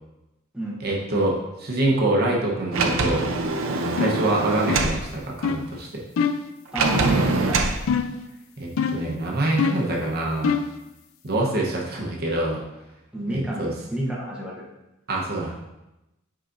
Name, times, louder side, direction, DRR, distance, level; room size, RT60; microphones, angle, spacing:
voice 1, 0.8-3.3 3.7-6.0 8.6-10.6 11.2-12.6 13.3-13.7 15.1-15.7, right 2 dB, 50° right, -2 dB, 1.0 m, -25 dB
Sliding door, 2.7-5.0 6.7-7.8, right 3 dB, 70° right, 0.6 m, -23 dB
sound 1, 4.0-4.3 4.7-5.0 5.4-5.7 6.2-6.5 7.9-8.3 8.8-9.1 9.6-9.9 10.4-10.8, left 6 dB, 70° left, 0.4 m, -24 dB
voice 2, 6.7-7.8 13.1-14.7, right 1 dB, 5° right, -5 dB, 1.0 m, -30 dB
8.5 x 4.9 x 2.6 m, 0.95 s
head